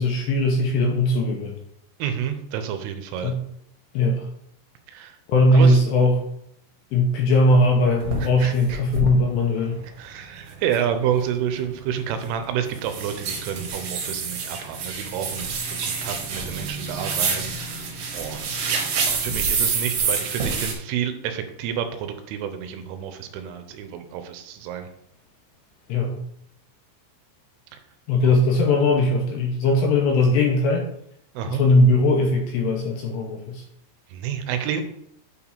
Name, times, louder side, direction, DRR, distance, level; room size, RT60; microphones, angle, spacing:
voice 1, 0.0-1.5 3.2-3.4 3.9-4.3 5.3-6.2 6.9-9.8 25.9-26.2 28.1-30.9 31.5-33.6, left 2 dB, 75° left, 1 dB, 2.6 m, -19 dB
voice 2, 2.0-3.3 4.9-5.2 5.5-5.8 8.2-8.8 9.8-24.9 28.2-28.4 31.3-31.6 34.1-34.8, right 9 dB, 90° right, 7 dB, 3.2 m, -29 dB
sound 1, 7.5-7.6 8.0-8.2 8.7-9.1 9.6-9.7 10.2-10.3 10.5-20.7, right 5 dB, 65° right, 3.0 m, -27 dB
8.6 x 4.8 x 3.5 m, 0.74 s
omnidirectional pair, 5.6 m